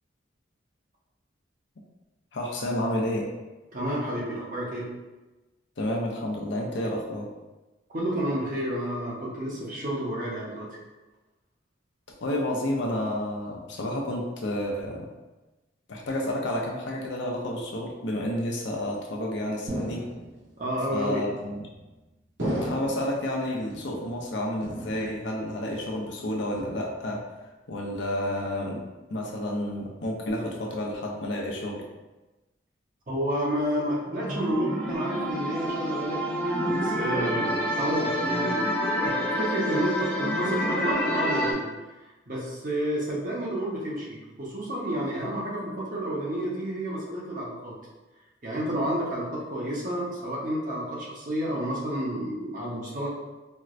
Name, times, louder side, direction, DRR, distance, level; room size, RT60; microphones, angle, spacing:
voice 1, 2.3-3.3 5.8-7.3 12.2-15.1 15.9-20.1 20.9-21.7 22.4-28.8 29.1-31.8, left 1 dB, 65° left, -1 dB, 0.6 m, -30 dB
voice 2, 3.7-4.9 7.9-10.7 20.6-21.2 33.1-37.5 37.8-38.6 39.0-41.7 42.3-47.7 48.4-53.1, right 1 dB, 40° right, -5 dB, 0.8 m, -30 dB
sound 1, 19.7-20.5 21.4-21.9 22.4-23.2 23.7-24.3 24.6-25.4 25.7-26.1 26.6-27.2, right 1 dB, 80° right, 1.4 m, -35 dB
sound 2, 34.1-41.5, equal, 5° left, 0.4 m, -28 dB
4.4 x 2.1 x 2.5 m, 1.1 s
head